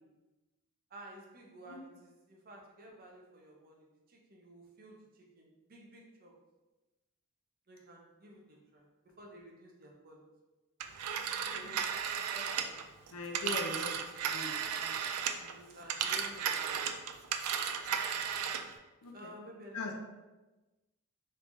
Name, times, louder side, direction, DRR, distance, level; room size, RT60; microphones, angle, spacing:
voice 1, 0.9-6.4 7.7-10.3 11.4-12.0 12.3-12.9 13.5-14.0 15.4-16.9 19.1-19.9, right 1 dB, 40° right, -1 dB, 0.6 m, -53 dB
Telephone, 10.8-15.5 15.8-18.7, right 8 dB, 85° right, 0.3 m, -35 dB
voice 2, 11.1-11.9 13.1-13.9 14.2-14.9 18.2-18.3 19.0-19.3 19.7-19.9, left 3 dB, 85° left, 3 dB, 0.6 m, -42 dB
3.4 x 3.2 x 2.6 m, 1.1 s
head